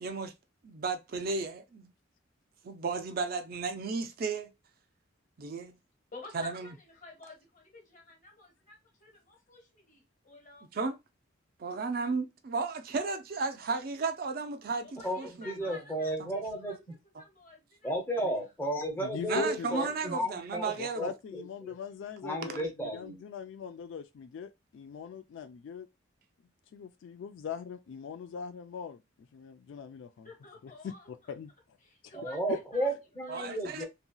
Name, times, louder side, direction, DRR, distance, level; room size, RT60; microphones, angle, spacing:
voice 1, 0.0-0.3 0.6-1.9 2.6-4.5 5.4-5.8 6.3-6.7 10.7-11.0 11.6-15.8 16.2-16.3 17.1-17.2 19.3-21.1 22.4-22.6 33.3-33.8, right 4 dB, 50° right, 0.4 m, -34 dB
voice 2, 6.1-10.7 14.8-18.2 30.2-31.3 31.8-32.9 33.2-33.9, left 3 dB, 40° left, 1.2 m, -52 dB
voice 3, 15.4-16.8 17.8-21.7 22.2-23.2 32.1-33.9, right 1 dB, 10° left, 0.7 m, -33 dB
voice 4, 19.0-20.0 20.8-25.9 26.7-29.0 29.3-30.3 30.6-31.5 32.0-32.1 32.5-32.6 33.8-33.9, left 6 dB, 70° left, 0.3 m, -41 dB
2.8 x 2.7 x 2.2 m
head